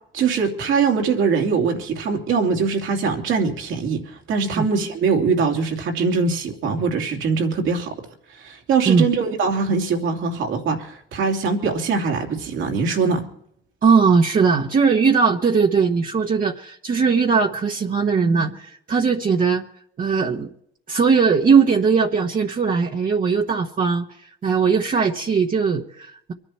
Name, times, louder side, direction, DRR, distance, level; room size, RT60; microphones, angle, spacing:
voice 1, 0.1-7.9 8.3-13.3, right 5 dB, 80° right, 3 dB, 2.8 m, -22 dB
voice 2, 13.8-19.6 20.0-20.5 20.9-24.0 24.4-26.3, right 5 dB, 45° right, 0 dB, 1.3 m, -19 dB
24.0 x 11.0 x 4.4 m, 0.69 s
cardioid pair, 90°, 20 cm